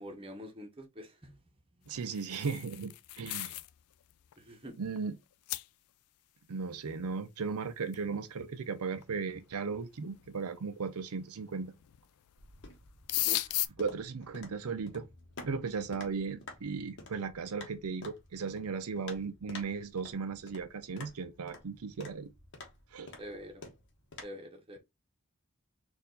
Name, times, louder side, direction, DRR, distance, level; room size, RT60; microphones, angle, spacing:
voice 1, 0.0-1.4 4.4-4.8 13.2-13.7 23.2-23.6 24.2-24.8, equal, 25° right, 1.0 m, -46 dB
voice 2, 1.9-3.5 4.8-5.2 6.5-11.7 13.8-15.1 15.4-22.3 22.9-23.1, right 5 dB, 80° right, 0.5 m, -36 dB
sound 1, 2.0-3.7 4.1-4.3 5.0-5.1 5.5-5.7 7.9-8.0 9.0-9.1 9.8-10.3 11.5-12.0 12.3-12.5 12.7-13.7, left 16 dB, 85° left, 0.4 m, -35 dB
sound 2, 12.4-24.2, left 3 dB, 55° left, 1.2 m, -51 dB
4.3 x 2.6 x 3.8 m
head